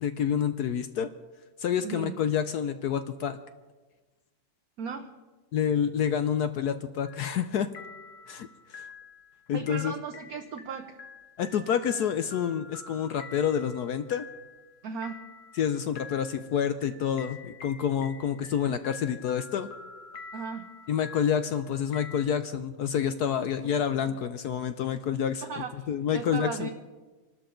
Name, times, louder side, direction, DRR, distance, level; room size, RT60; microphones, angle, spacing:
voice 1, 0.0-1.1 1.6-3.4 5.5-7.7 8.3-8.8 9.5-9.9 11.4-14.2 15.5-19.7 20.9-26.7, left 8 dB, 70° left, 10 dB, 0.9 m, -28 dB
voice 2, 4.8-5.1 9.5-11.0 14.8-15.2 20.3-20.7 24.1-24.2 25.4-25.9 26.1-26.7, right 6 dB, 55° right, 5 dB, 1.1 m, -36 dB
sound 1, 7.1-7.5 7.7-22.2, left 5 dB, 55° left, 1.6 m, -47 dB
27.0 x 12.5 x 3.8 m, 1.3 s
omnidirectional pair, 2.3 m